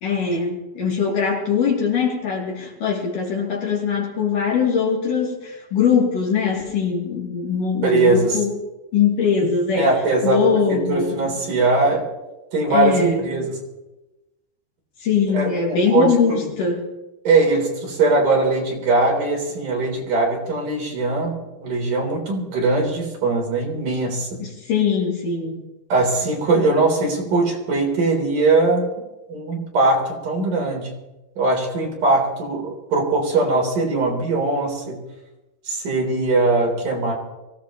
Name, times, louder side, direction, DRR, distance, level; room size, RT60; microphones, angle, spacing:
voice 1, 0.0-8.6 8.9-9.9 10.2-11.3 12.7-13.2 15.0-16.9 24.4-25.6, left 6 dB, 60° left, -2 dB, 4.2 m, -21 dB
voice 2, 7.8-8.4 9.8-12.0 12.5-13.6 15.3-16.4 17.2-21.4 21.6-24.4 25.9-28.9 29.3-30.9 31.4-35.1 35.6-37.1, right 3 dB, 55° right, -1 dB, 5.1 m, -20 dB
23.5 x 17.0 x 3.1 m, 1.0 s
omnidirectional pair, 4.4 m